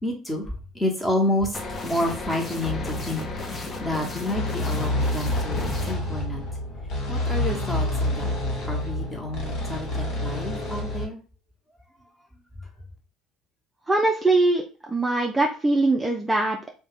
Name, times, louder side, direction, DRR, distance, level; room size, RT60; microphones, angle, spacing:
voice 1, 0.0-6.4 7.1-8.3 8.6-11.2 12.6-12.7, left 1 dB, 10° left, 0 dB, 1.1 m, -29 dB
sound 1, 1.5-5.9, left 3 dB, 35° left, 0.7 m, -35 dB
sound 2, 2.6-11.1, left 1 dB, 60° left, 1.0 m, -28 dB
voice 2, 13.9-14.6 14.9-16.7, right 2 dB, 15° right, 1 dB, 0.4 m, -22 dB
2.7 x 2.2 x 3.3 m, 0.36 s
hypercardioid pair, 65°, 0 cm